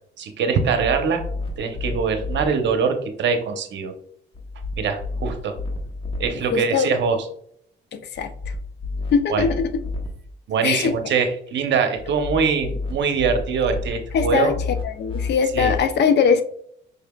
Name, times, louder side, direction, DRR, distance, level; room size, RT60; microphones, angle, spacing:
voice 1, 0.2-1.2 1.6-3.9 4.8-5.5 6.2-7.2 9.3-9.5 10.5-14.5 15.5-15.7, right 5 dB, 65° right, 6 dB, 0.8 m, -23 dB
sound 1, 0.5-2.5 4.3-6.3 8.2-10.1 12.0-15.8, left 3 dB, 25° left, 1.0 m, -31 dB
voice 2, 6.5-6.9 7.9-8.3 9.1-9.7 10.6-10.9 14.1-14.6 14.8-16.4, left 6 dB, 60° left, 9 dB, 0.5 m, -21 dB
5.4 x 3.3 x 2.3 m, 0.64 s
cardioid pair, 90°, 20 cm